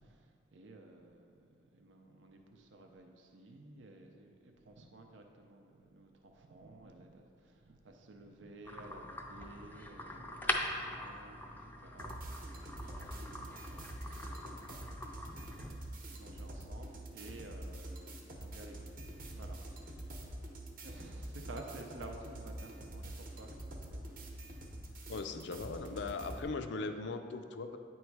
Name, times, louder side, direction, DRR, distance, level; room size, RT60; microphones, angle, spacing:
voice 1, 0.0-19.0 19.3-20.4 20.8-24.0 26.7-26.8, right 2 dB, 85° right, 3 dB, 0.6 m, -54 dB
sound 1, 8.6-15.7, left 1 dB, 10° left, 0.4 m, -42 dB
sound 2, 12.0-26.4, right 1 dB, 50° right, 0.8 m, -46 dB
voice 2, 25.1-27.8, left 3 dB, 65° left, 8 dB, 0.4 m, -39 dB
9.1 x 3.1 x 4.6 m, 2.3 s
head